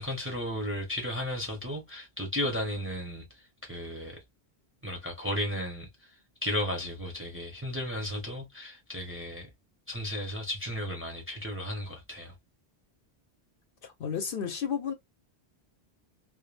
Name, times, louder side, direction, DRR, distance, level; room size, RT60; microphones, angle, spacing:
voice 1, 0.0-3.3 3.6-4.2 4.8-6.1 6.4-9.5 9.9-12.3, left 1 dB, 15° right, 0.6 m, -34 dB
voice 2, 13.8-14.9, left 7 dB, 65° left, 0.7 m, -32 dB
2.2 x 2.0 x 3.1 m
omnidirectional pair, 1.1 m